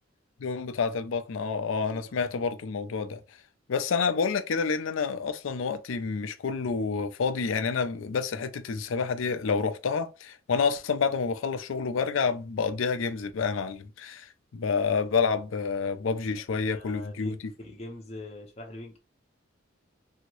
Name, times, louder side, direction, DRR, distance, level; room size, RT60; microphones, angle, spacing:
voice 1, 0.4-3.2 3.7-17.5, left 5 dB, 80° left, 0.4 m, -28 dB
voice 2, 16.7-19.0, left 2 dB, 35° left, 0.6 m, -43 dB
2.8 x 2.7 x 3.0 m
head